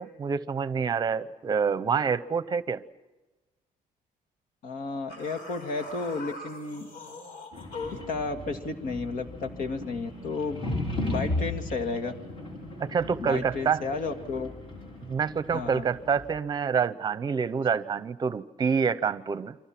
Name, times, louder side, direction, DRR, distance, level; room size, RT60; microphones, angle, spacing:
voice 1, 0.0-2.8 12.8-13.8 15.0-19.5, right 6 dB, 30° right, 15 dB, 0.8 m, -27 dB
voice 2, 4.6-6.9 7.9-10.6 11.0-12.1 13.2-14.5 15.5-15.9, left 3 dB, 70° left, 5 dB, 2.3 m, -32 dB
sound 1, 5.1-8.1, left 3 dB, 85° left, 5.1 m, -41 dB
sound 2, 7.5-16.3, left 2 dB, 40° left, 5.9 m, -36 dB
29.0 x 25.0 x 6.0 m, 1.1 s
cardioid pair, 160°, 15 cm